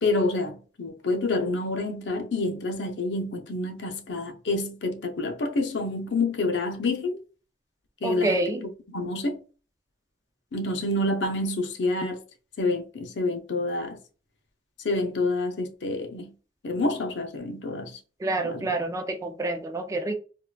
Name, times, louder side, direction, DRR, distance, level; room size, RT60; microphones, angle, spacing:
voice 1, 0.0-7.2 8.0-8.4 8.9-9.4 10.5-12.2 12.6-14.0 14.8-16.3 16.6-18.0 18.4-18.7, left 2 dB, 70° left, 0.6 m, -28 dB
voice 2, 8.0-8.7 18.2-20.2, right 2 dB, 15° right, 0.3 m, -28 dB
3.7 x 2.3 x 2.2 m
head